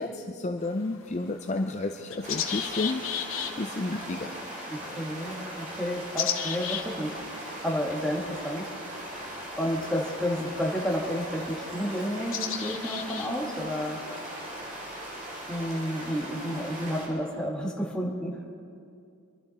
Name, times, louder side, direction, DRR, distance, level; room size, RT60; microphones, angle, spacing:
voice 1, 0.0-3.0 3.6-4.3, left 2 dB, 30° left, 5 dB, 0.5 m, -31 dB
sound 1, 0.6-14.5, left 9 dB, 70° left, 1.1 m, -38 dB
sound 2, 2.2-17.1, right 1 dB, 35° right, 2.6 m, -39 dB
voice 2, 4.7-7.2 7.6-8.7 9.6-14.0 15.5-18.4, equal, 5° left, -2 dB, 1.6 m, -31 dB
23.5 x 12.5 x 4.1 m, 2.4 s
head